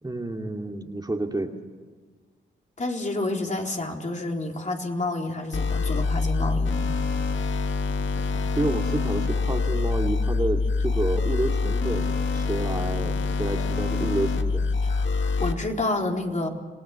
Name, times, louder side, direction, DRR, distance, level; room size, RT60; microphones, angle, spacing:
voice 1, 0.0-1.5 8.6-14.6, right 2 dB, 20° right, 3 dB, 2.5 m, -29 dB
voice 2, 2.8-6.8 14.8-16.5, left 2 dB, 35° left, 1 dB, 3.9 m, -29 dB
sound 1, 5.5-15.5, left 4 dB, 70° left, 1.9 m, -25 dB
27.0 x 18.0 x 7.2 m, 1.4 s
cardioid pair, 55°, 20 cm